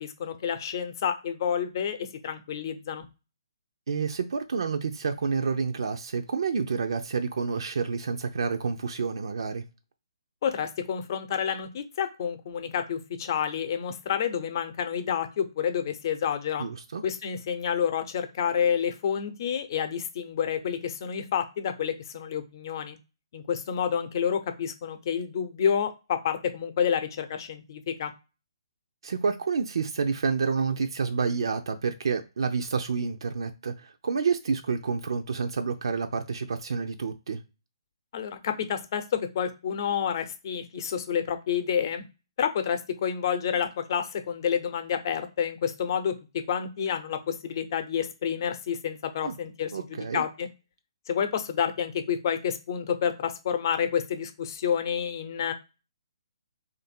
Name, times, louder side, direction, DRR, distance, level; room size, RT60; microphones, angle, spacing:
voice 1, 0.0-3.0 10.4-16.6 17.0-23.0 23.3-28.1 38.1-39.0 39.3-42.0 42.4-46.1 46.5-50.5 51.1-55.5, left 8 dB, 45° left, 0.7 m, -29 dB
voice 2, 3.9-9.6 16.6-17.0 29.0-37.4 49.2-49.3 49.7-50.2, right 5 dB, 70° right, 0.5 m, -29 dB
3.0 x 2.6 x 4.3 m
hypercardioid pair, 145°, 3 cm